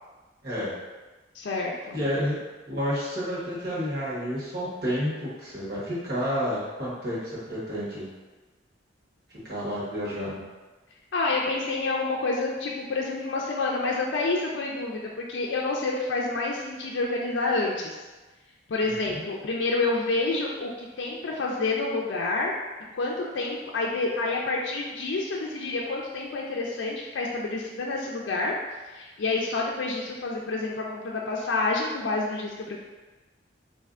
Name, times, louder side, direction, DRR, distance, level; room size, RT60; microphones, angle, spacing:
voice 1, 1.3-2.0 11.1-18.0 18.7-22.5 22.9-28.6 28.9-32.8, left 3 dB, 65° left, -2 dB, 0.4 m, -28 dB
voice 2, 1.9-2.4 2.7-8.1 9.4-10.4 18.8-19.2, equal, 55° right, -7 dB, 1.2 m, -30 dB
4.2 x 2.6 x 2.4 m, 1.2 s
head